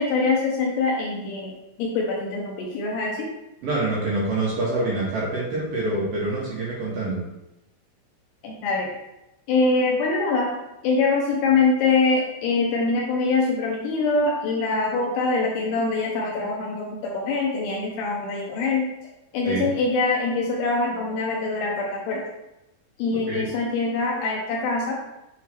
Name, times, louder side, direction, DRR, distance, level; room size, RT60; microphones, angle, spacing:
voice 1, 0.0-3.3 8.4-8.9 9.5-10.5 10.8-18.9 19.3-22.3 23.0-25.0, left 3 dB, 80° left, -1 dB, 2.6 m, -24 dB
voice 2, 3.6-7.2 19.4-19.7 23.3-23.5, right 2 dB, 65° right, -7 dB, 2.5 m, -26 dB
7.3 x 3.7 x 4.4 m, 0.93 s
omnidirectional pair, 5.4 m